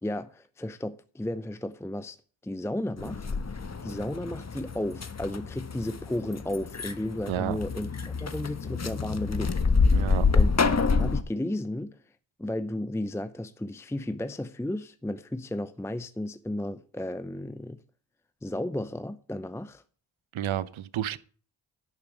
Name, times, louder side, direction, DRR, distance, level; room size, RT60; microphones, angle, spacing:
voice 1, 0.0-2.2 2.4-7.9 8.2-9.6 9.9-10.1 10.3-10.5 10.9-12.0 12.4-17.8 18.4-19.8, left 1 dB, 5° left, 0.6 m, -34 dB
sound 1, 3.0-11.2, left 4 dB, 35° left, 1.2 m, -27 dB
voice 2, 9.9-10.3 20.3-21.2, right 12 dB, 75° right, 0.9 m, -30 dB
11.5 x 5.2 x 8.2 m
cardioid pair, 50°, 48 cm